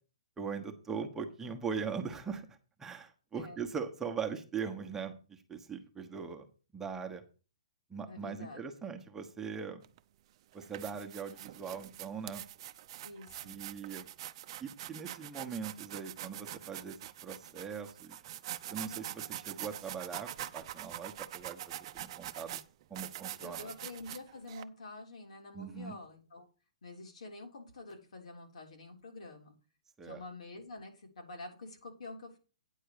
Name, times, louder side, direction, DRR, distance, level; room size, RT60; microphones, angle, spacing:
voice 1, 0.4-6.5 6.7-7.2 7.9-9.8 10.5-12.4 13.4-14.1 14.6-17.0 17.2-18.2 18.7-20.3 20.5-21.6 21.9-22.6 22.9-23.7 25.5-25.9 30.0-30.2, right 6 dB, 10° right, 3 dB, 1.2 m, -40 dB
voice 2, 8.1-8.7 13.0-13.6 23.4-26.5 26.8-29.6 30.0-32.4, left 2 dB, 70° left, 1 dB, 3.4 m, -47 dB
sound 1, 9.8-10.0 10.5-24.6, right 13 dB, 45° right, 0.6 m, -44 dB
9.2 x 4.5 x 6.7 m, 0.35 s
hypercardioid pair, 135°, 4 cm